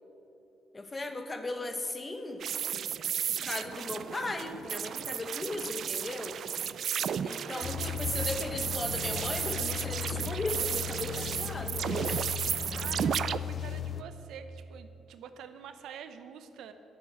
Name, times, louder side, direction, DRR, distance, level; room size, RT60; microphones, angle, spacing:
voice 1, 0.7-2.8 3.4-6.4 7.2-12.1, left 2 dB, 25° left, 7 dB, 1.2 m, -37 dB
sound 1, 2.4-13.4, right 8 dB, 60° right, 0.4 m, -34 dB
voice 2, 7.1-7.9 12.7-16.7, right 7 dB, 80° right, 9 dB, 0.8 m, -47 dB
sound 2, 7.6-14.0, left 8 dB, 50° left, 0.4 m, -37 dB
10.5 x 8.7 x 7.6 m, 3.0 s
cardioid pair, 90°, 0 cm